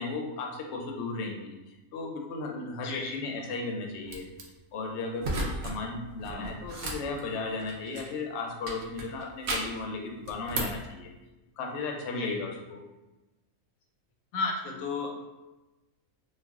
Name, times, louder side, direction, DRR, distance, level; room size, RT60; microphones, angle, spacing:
voice 1, 0.0-4.3 4.7-11.1 11.6-12.8, left 3 dB, 65° left, 1 dB, 0.7 m, -35 dB
voice 2, 2.8-3.2 6.3-6.5 12.2-12.4 14.3-15.3, left 4 dB, 90° left, 2 dB, 1.0 m, -33 dB
sound 1, 4.1-4.4 5.2-5.8 6.1-8.2 8.6-9.8 10.2-10.8, right 2 dB, 65° right, 0.5 m, -35 dB
2.4 x 2.2 x 3.5 m, 1.0 s
omnidirectional pair, 1.5 m